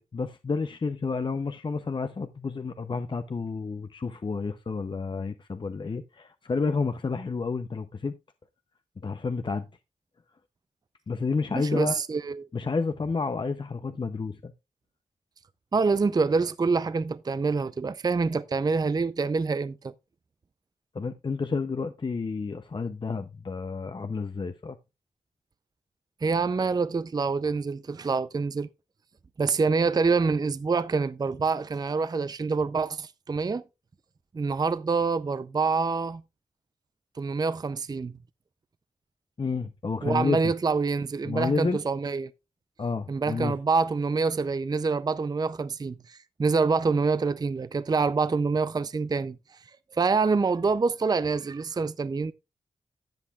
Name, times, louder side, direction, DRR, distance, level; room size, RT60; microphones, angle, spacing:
voice 1, 0.0-8.1 9.0-9.7 11.1-12.0 12.5-14.5 20.9-24.8 39.4-40.5 41.2-41.8 42.8-43.6, left 4 dB, 40° left, 0.6 m, -30 dB
voice 2, 11.5-12.5 15.7-19.9 26.2-28.7 29.4-33.6 34.3-36.2 37.2-38.2 40.0-42.3 43.1-49.6 49.9-52.3, right 4 dB, 30° right, 0.4 m, -26 dB
13.0 x 8.2 x 2.3 m
cardioid pair, 70°, 12 cm